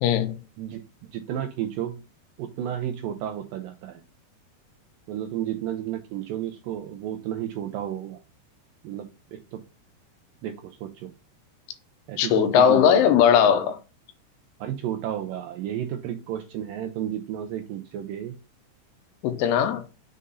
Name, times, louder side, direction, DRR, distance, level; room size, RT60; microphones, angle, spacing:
voice 1, 0.0-0.4 12.2-13.8 19.2-19.8, left 8 dB, 90° left, 2.8 m, -19 dB
voice 2, 1.1-2.0 2.4-4.0 5.1-8.2 8.8-9.6 10.4-11.1 12.1-13.3 14.6-18.4, right 11 dB, 85° right, 2.0 m, -32 dB
6.6 x 3.8 x 4.0 m
omnidirectional pair, 4.5 m